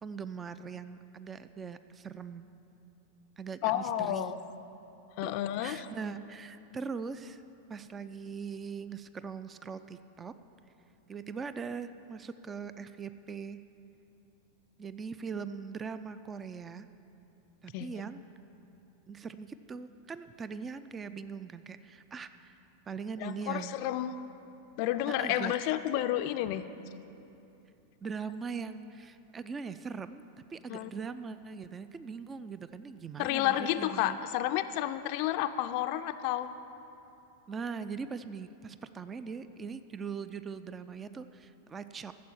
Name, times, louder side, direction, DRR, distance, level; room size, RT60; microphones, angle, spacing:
voice 1, 0.0-2.5 3.4-4.3 5.2-5.3 5.6-7.4 7.7-10.3 11.1-13.6 14.8-16.9 17.6-18.2 19.1-22.6 22.9-23.8 25.1-25.6 28.0-30.2 30.5-34.2 37.5-42.1, right 5 dB, 20° right, 12 dB, 0.4 m, -41 dB
voice 2, 3.6-4.4 5.2-5.9 17.7-17.9 23.2-24.1 24.8-26.6 30.7-30.9 33.2-36.5, left 13 dB, 45° left, 10 dB, 0.4 m, -31 dB
13.5 x 7.5 x 8.7 m, 2.8 s
figure-of-eight pair, 90°, 0 cm